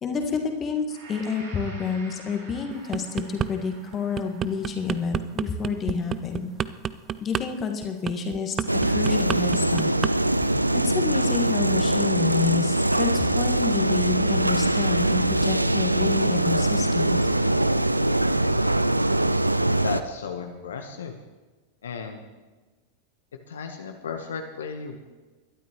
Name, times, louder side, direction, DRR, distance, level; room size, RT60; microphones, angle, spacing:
voice 1, 0.0-6.5 7.2-8.6 8.8-9.9 10.7-17.2, left 5 dB, 25° left, 4 dB, 1.7 m, -29 dB
Gong, 0.9-9.2 9.6-9.8, right 3 dB, 65° right, 4.5 m, -50 dB
sound 1, 2.7-3.5 3.9-10.1 10.4-10.7, right 9 dB, 25° right, 0.4 m, -29 dB
sound 2, 8.7-20.0, right 1 dB, 85° right, 0.4 m, -22 dB
voice 2, 19.8-21.2 21.8-22.2 23.5-25.0, left 5 dB, 65° left, 5 dB, 1.0 m, -34 dB
21.5 x 12.0 x 3.1 m, 1.2 s
figure-of-eight pair, 90°, 0 cm